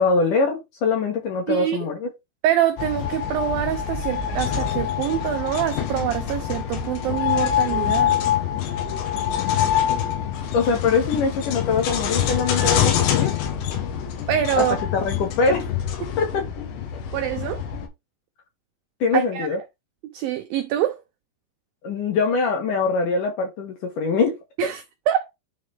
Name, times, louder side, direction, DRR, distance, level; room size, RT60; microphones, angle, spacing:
voice 1, 0.0-2.1 10.5-13.3 14.6-14.7 14.9-15.7 16.2-16.5 19.0-19.6 21.8-24.4, left 4 dB, 65° left, 2.3 m, -23 dB
voice 2, 1.5-1.8 2.4-8.2 14.3-14.8 17.1-17.6 19.1-19.5 20.1-21.0 24.6-24.8 25.1-25.3, right 11 dB, 85° right, 2.0 m, -25 dB
sound 1, 2.8-17.9, left 9 dB, 90° left, 3.5 m, -25 dB
9.7 x 3.8 x 3.4 m
omnidirectional pair, 5.0 m